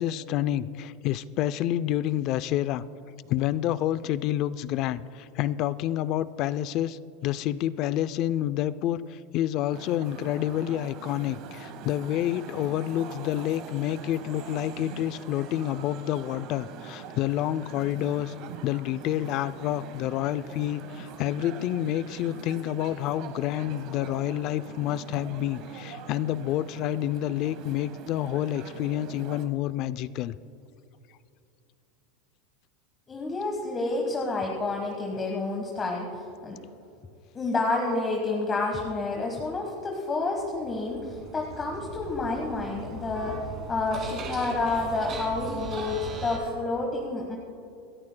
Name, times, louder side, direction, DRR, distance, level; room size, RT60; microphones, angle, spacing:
voice 1, 0.0-2.8 3.3-18.3 18.6-30.4, left 12 dB, 40° left, 16 dB, 0.4 m, -28 dB
sound 1, 9.7-29.5, right 6 dB, 45° right, 1.4 m, -43 dB
voice 2, 33.1-36.6 37.3-43.4 43.7-47.4, left 3 dB, 15° left, 0 dB, 1.3 m, -29 dB
sound 2, 40.4-46.4, right 3 dB, 30° right, 2.3 m, -38 dB
27.0 x 13.5 x 2.2 m, 2.7 s
supercardioid pair, 155°, 0 cm